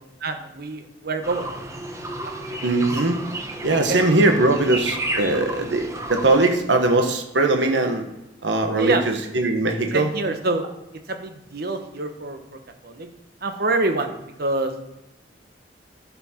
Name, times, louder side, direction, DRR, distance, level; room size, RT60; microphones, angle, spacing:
voice 1, 0.2-1.5 2.2-2.3 3.9-4.0 8.8-9.0 9.9-10.6 11.1-12.4 12.8-13.1 13.4-14.1 14.4-14.7, right 2 dB, 55° right, 6 dB, 1.2 m, -25 dB
sound 1, 1.2-6.5, right 1 dB, 15° right, 1.1 m, -31 dB
voice 2, 2.6-3.2 3.6-8.0 8.4-10.1, right 2 dB, 75° right, 5 dB, 1.3 m, -20 dB
11.0 x 7.1 x 4.4 m, 0.92 s
head